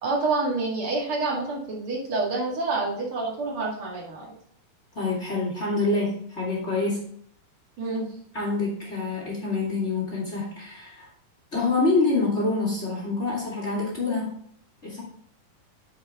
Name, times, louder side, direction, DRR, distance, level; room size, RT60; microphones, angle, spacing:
voice 1, 0.0-4.3 7.8-8.0, right 3 dB, 45° right, -2 dB, 2.4 m, -27 dB
voice 2, 4.9-7.1 8.3-11.1 11.5-14.3 14.8-15.0, left 3 dB, 25° left, -4 dB, 2.1 m, -26 dB
10.0 x 5.2 x 3.6 m, 0.65 s
omnidirectional pair, 4.0 m